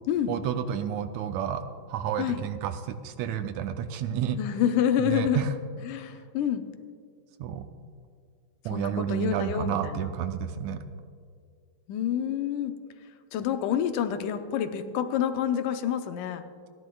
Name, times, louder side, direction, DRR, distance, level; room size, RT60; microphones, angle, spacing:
voice 1, 0.3-1.6 1.9-4.4 5.0-5.5 7.4-7.7 8.6-10.8, right 9 dB, 80° right, 9 dB, 1.7 m, -30 dB
voice 2, 4.4-5.4 5.8-6.6 8.7-10.1 11.9-12.7 13.3-16.4, left 9 dB, 90° left, 8 dB, 2.3 m, -28 dB
28.5 x 11.0 x 2.3 m, 2.2 s
omnidirectional pair, 3.6 m